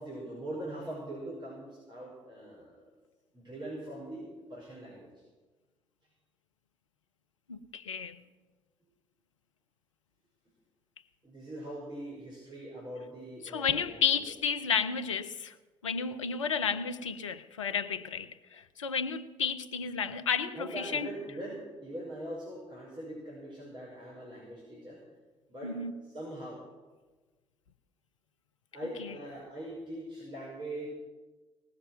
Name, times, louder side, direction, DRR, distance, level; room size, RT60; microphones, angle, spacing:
voice 1, 0.0-2.9 3.3-5.2 11.2-14.2 20.5-25.0 25.5-25.7 26.1-26.6 28.7-30.9, right 1 dB, 30° right, 5.7 m, -42 dB
voice 2, 7.5-8.2 13.4-15.6 15.8-21.1 25.6-26.0 29.0-29.1, left 6 dB, 85° left, 0.6 m, -32 dB
19.0 x 7.4 x 9.2 m
figure-of-eight pair, 45°, 16 cm